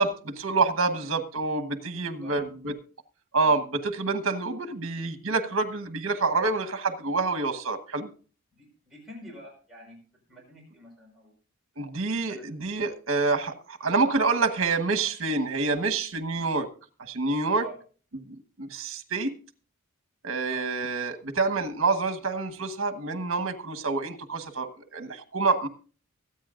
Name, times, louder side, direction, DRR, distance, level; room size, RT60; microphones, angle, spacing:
voice 1, 0.0-2.8 3.3-8.1 11.8-16.7 17.0-17.6 18.3-19.3 20.2-25.7, right 3 dB, 70° right, 8 dB, 1.2 m, -27 dB
voice 2, 1.9-2.5 8.5-10.0 10.3-11.3 12.3-12.5 17.6-17.8 20.4-20.7, right 1 dB, ahead, -3 dB, 4.9 m, -47 dB
24.0 x 8.7 x 2.5 m, 0.37 s
head